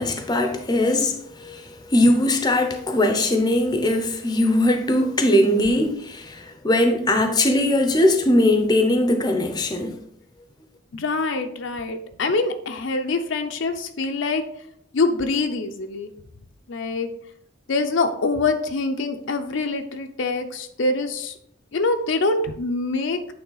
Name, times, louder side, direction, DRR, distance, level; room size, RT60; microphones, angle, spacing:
voice 1, 0.0-10.0, left 1 dB, 20° left, 0.6 m, -20 dB
voice 2, 10.9-14.5 14.9-16.1 16.7-17.1 17.7-21.3 21.7-23.3, left 3 dB, 65° left, 0.6 m, -24 dB
8.7 x 3.3 x 3.9 m
head